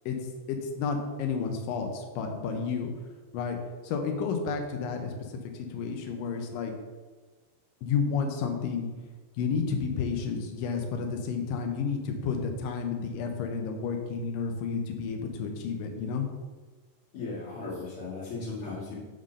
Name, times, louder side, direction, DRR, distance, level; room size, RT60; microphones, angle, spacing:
voice 1, 0.5-2.9 3.3-3.6 3.8-5.1 5.7-6.7 7.8-8.9 9.4-16.3, left 5 dB, 85° left, 4 dB, 2.0 m, -31 dB
voice 2, 17.1-18.9, left 3 dB, 45° left, -6 dB, 1.8 m, -36 dB
6.9 x 3.8 x 6.3 m, 1.3 s
omnidirectional pair, 5.0 m